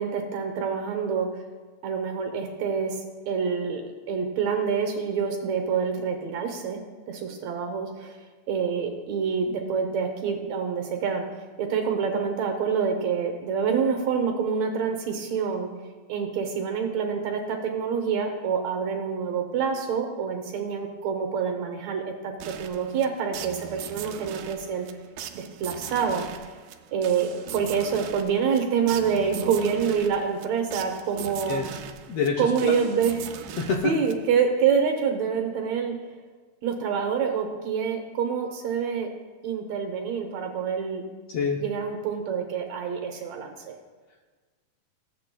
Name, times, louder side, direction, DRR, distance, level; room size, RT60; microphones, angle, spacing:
voice 1, 0.0-1.4 1.8-8.2 8.5-11.2 11.6-15.7 16.1-24.9 25.3-26.3 26.9-31.6 32.4-33.3 33.8-36.0 36.6-39.1 39.4-41.0 41.6-43.7, right 6 dB, 70° right, 4 dB, 1.9 m, -27 dB
sound 1, 22.4-34.5, right 10 dB, 85° right, 2.2 m, -40 dB
voice 2, 32.1-32.7 33.6-33.9 41.3-41.6, left 5 dB, 90° left, 0 dB, 1.3 m, -26 dB
16.0 x 8.4 x 2.2 m, 1.4 s
omnidirectional pair, 3.7 m